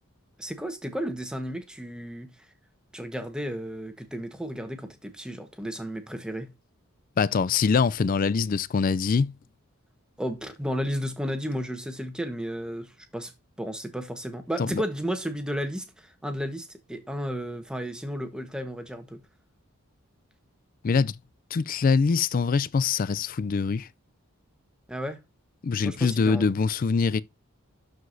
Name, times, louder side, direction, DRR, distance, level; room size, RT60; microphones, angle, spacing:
voice 1, 0.4-2.3 2.9-6.5 10.2-13.3 13.6-19.2 24.9-25.2 25.8-26.5, equal, 5° right, 1.1 m, -33 dB
voice 2, 7.2-9.3 14.6-14.8 20.8-21.2 21.5-23.9 25.6-27.2, left 5 dB, 40° left, 0.3 m, -24 dB
12.0 x 4.8 x 2.6 m
head